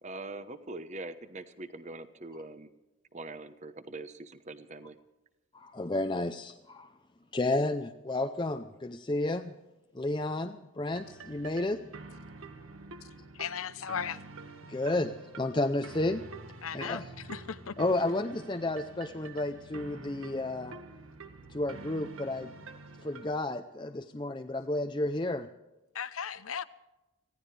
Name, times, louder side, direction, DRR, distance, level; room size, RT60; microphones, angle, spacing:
voice 1, 0.0-2.7 3.1-5.0, right 2 dB, 35° right, 1.0 m, -43 dB
voice 2, 5.5-6.9 7.3-9.5 9.9-11.8 14.6-16.2 16.7-17.1 17.8-20.8 21.5-22.5 23.0-25.5, left 2 dB, 20° left, 0.6 m, -32 dB
sound 1, 10.9-23.3, right 3 dB, 75° right, 1.7 m, -47 dB
voice 3, 13.3-14.2 16.6-17.0 17.3-17.8 25.9-26.6, left 7 dB, 80° left, 0.8 m, -36 dB
25.0 x 16.5 x 3.4 m
head